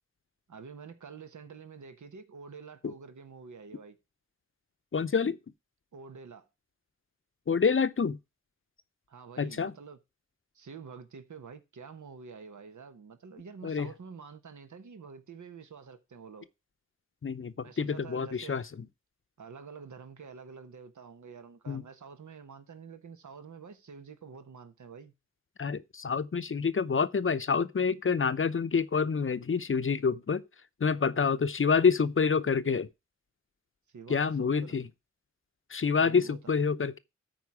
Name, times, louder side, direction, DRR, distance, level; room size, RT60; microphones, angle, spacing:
voice 1, 0.5-4.0 5.9-6.5 9.1-10.0 10.5-16.5 17.6-18.7 19.4-25.1 33.9-34.8 36.0-36.5, right 5 dB, 80° right, 1.2 m, -48 dB
voice 2, 4.9-5.4 7.5-8.2 9.4-9.7 13.6-13.9 17.2-18.6 21.7-21.8 25.6-30.4 30.8-32.9 34.1-34.9 35.7-37.0, left 5 dB, 45° left, 0.7 m, -27 dB
13.0 x 4.7 x 4.7 m
wide cardioid pair, 75°, 29 cm